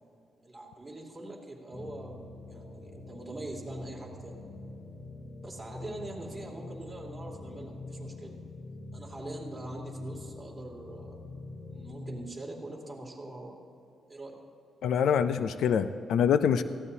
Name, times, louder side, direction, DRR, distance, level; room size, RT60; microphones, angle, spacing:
voice 1, 0.4-4.4 5.4-8.3 8.9-11.2 11.7-13.6 14.1-14.4, right 2 dB, 15° right, -2 dB, 2.5 m, -43 dB
sound 1, 1.7-12.3, left 2 dB, 40° left, 1.1 m, -44 dB
voice 2, 14.8-16.6, left 8 dB, 85° left, 12 dB, 0.4 m, -25 dB
18.0 x 15.0 x 2.8 m, 2.7 s
cardioid pair, 105°, 0 cm